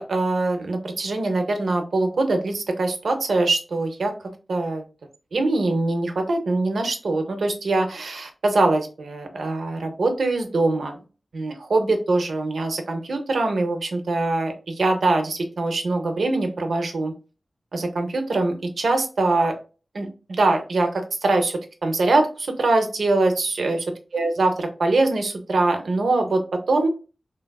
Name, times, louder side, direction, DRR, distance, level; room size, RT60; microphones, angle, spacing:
voice 1, 0.0-4.1 4.5-4.8 5.3-11.0 11.3-17.1 17.7-19.5 19.9-23.8 24.1-26.9, right 2 dB, 85° right, 5 dB, 0.6 m, -23 dB
3.2 x 2.3 x 2.2 m, 0.34 s
wide cardioid pair, 105°, 0 cm